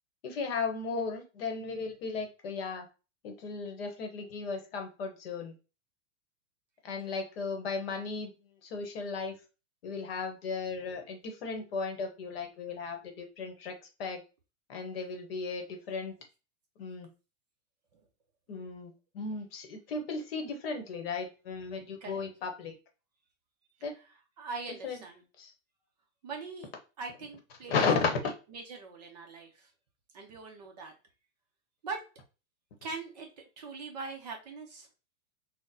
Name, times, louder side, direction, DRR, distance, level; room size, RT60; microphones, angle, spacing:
voice 1, 0.2-2.9 3.2-5.5 6.8-8.3 8.6-9.3 9.8-14.2 14.7-16.1 16.8-17.1 18.5-22.7 23.8-23.9 24.8-25.0 25.4-25.5 27.7-28.2, left 4 dB, 50° left, 4 dB, 0.9 m, -35 dB
voice 2, 23.9-25.2 26.2-26.7 27.0-27.8 28.2-29.7 30.1-30.9 31.8-32.0 32.8-34.9, right 4 dB, 35° right, 2 dB, 0.5 m, -42 dB
4.0 x 2.0 x 2.6 m, 0.32 s
supercardioid pair, 165°, 39 cm